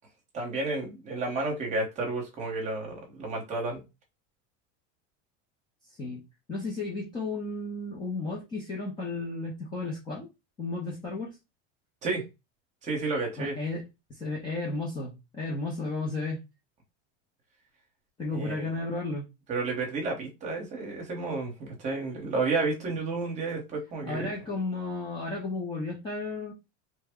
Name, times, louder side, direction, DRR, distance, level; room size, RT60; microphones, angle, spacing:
voice 1, 0.3-3.8 12.0-12.2 12.8-13.5 18.3-18.7 19.5-24.3, right 3 dB, 20° right, 0.9 m, -31 dB
voice 2, 5.9-6.2 6.5-10.3 10.6-11.4 13.4-16.4 18.2-19.3 24.1-26.5, left 3 dB, 15° left, 0.4 m, -33 dB
3.2 x 2.0 x 3.4 m
cardioid pair, 175°, 36 cm